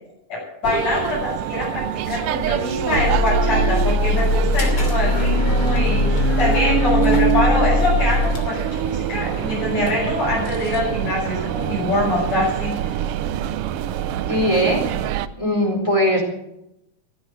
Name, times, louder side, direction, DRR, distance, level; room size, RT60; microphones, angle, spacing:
voice 1, 0.3-13.0, left 1 dB, 60° left, -7 dB, 8.3 m, -24 dB
sound 1, 0.6-15.3, right 10 dB, 80° right, 1.3 m, -25 dB
sound 2, 3.0-8.4, left 1 dB, 90° left, 4.0 m, -20 dB
sound 3, 4.0-13.5, left 4 dB, 45° left, 3.8 m, -33 dB
voice 2, 14.3-14.8 15.4-16.2, equal, 10° left, 0 dB, 3.9 m, -19 dB
15.5 x 12.0 x 7.5 m, 0.84 s
omnidirectional pair, 3.4 m